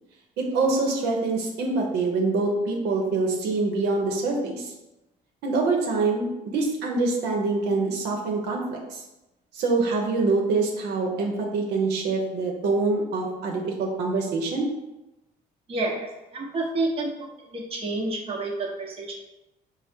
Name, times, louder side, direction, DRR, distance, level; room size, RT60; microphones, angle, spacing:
voice 1, 0.4-4.7 5.4-9.0 9.5-14.7, right 3 dB, 80° right, 0 dB, 0.8 m, -25 dB
voice 2, 15.7-17.1 17.5-19.2, right 2 dB, 35° right, -1 dB, 0.8 m, -29 dB
4.7 x 2.0 x 4.3 m, 0.97 s
cardioid pair, 110°, 17 cm